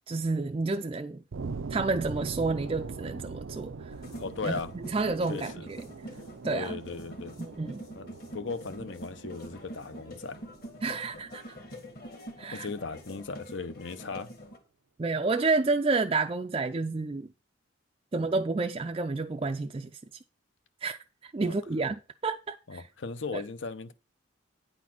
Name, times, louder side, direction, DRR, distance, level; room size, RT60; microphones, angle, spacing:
voice 1, 0.1-1.2 1.7-3.7 4.4-4.6 4.9-5.9 6.4-6.8 7.4-7.8 10.8-11.6 12.4-12.7 15.0-17.3 18.1-19.9 20.8-21.0 21.2-22.8 23.3-23.4, right 3 dB, 25° right, 0.4 m, -30 dB
sound 1, 1.3-12.1, right 4 dB, 80° right, 0.5 m, -42 dB
sound 2, 3.9-14.6, equal, 50° left, 1.9 m, -45 dB
voice 2, 4.2-4.7 5.3-5.7 6.5-7.4 8.0-10.4 12.5-14.3 21.4-21.6 22.7-23.9, left 4 dB, 70° left, 0.7 m, -37 dB
9.4 x 4.1 x 5.9 m
head